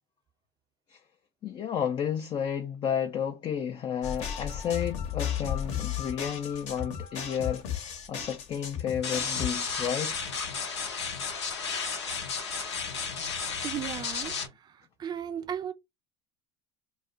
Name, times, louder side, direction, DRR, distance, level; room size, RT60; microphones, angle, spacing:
voice 1, 1.4-10.2, left 8 dB, 35° left, 0.5 m, -32 dB
sound 1, 4.0-9.5, left 9 dB, 50° left, 0.9 m, -34 dB
sound 2, 9.0-14.5, left 5 dB, 85° left, 0.7 m, -33 dB
voice 2, 13.2-15.7, right 9 dB, 30° right, 0.5 m, -37 dB
2.3 x 2.1 x 3.8 m
hypercardioid pair, 70°, 14 cm